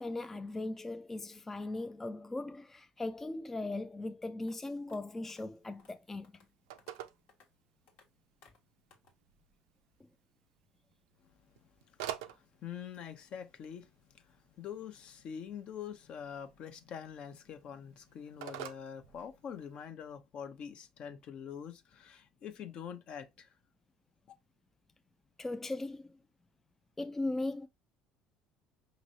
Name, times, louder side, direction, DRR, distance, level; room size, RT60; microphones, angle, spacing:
voice 1, 0.0-6.3 25.4-26.1 27.0-27.7, left 2 dB, 15° left, 0.3 m, -38 dB
sound 1, 4.5-4.6 4.9-5.0 5.3-5.4 5.8-5.9 6.2-6.5 6.8-7.0 7.3-7.5 7.9-8.1 8.4-8.6 8.9-9.1, left 5 dB, 70° left, 1.3 m, -63 dB
Telephone, 5.3-19.8, right 12 dB, 90° right, 0.4 m, -51 dB
voice 2, 12.2-23.5 24.3-24.4, left 8 dB, 55° left, 0.7 m, -45 dB
5.2 x 3.0 x 2.7 m
supercardioid pair, 90°, 2 cm